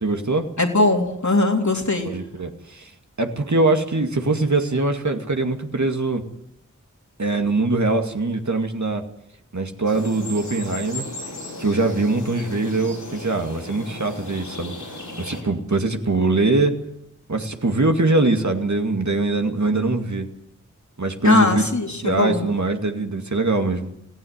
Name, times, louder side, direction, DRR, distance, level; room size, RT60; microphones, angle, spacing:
voice 1, 0.0-0.5 2.1-2.9 3.2-6.2 7.2-9.0 9.5-11.1 11.6-14.7 15.2-16.7 17.3-20.3 21.0-21.6 22.0-23.9, right 2 dB, 65° right, 5 dB, 2.3 m, -22 dB
voice 2, 0.6-2.1 21.2-22.5, left 2 dB, 65° left, 2 dB, 3.4 m, -20 dB
sound 1, 9.8-15.4, left 2 dB, 90° left, 6.3 m, -36 dB
17.0 x 16.0 x 9.6 m, 0.78 s
wide cardioid pair, 40°, 30 cm